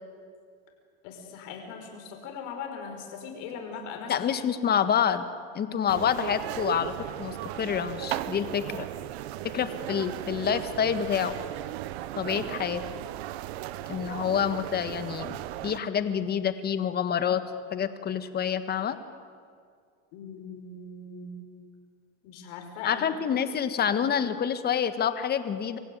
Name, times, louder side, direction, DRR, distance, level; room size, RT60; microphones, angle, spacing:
voice 1, 1.0-4.3 20.1-21.4 22.2-23.2, left 5 dB, 65° left, 3 dB, 5.3 m, -40 dB
voice 2, 4.1-5.3 5.5-8.9 9.5-11.4 12.1-12.8 13.9-17.4 17.7-19.0 22.8-25.8, left 8 dB, 30° left, 11 dB, 1.6 m, -27 dB
sound 1, 5.9-15.8, right 14 dB, 75° right, 1.0 m, -36 dB
25.5 x 15.5 x 9.4 m, 2.2 s
supercardioid pair, 115°, 32 cm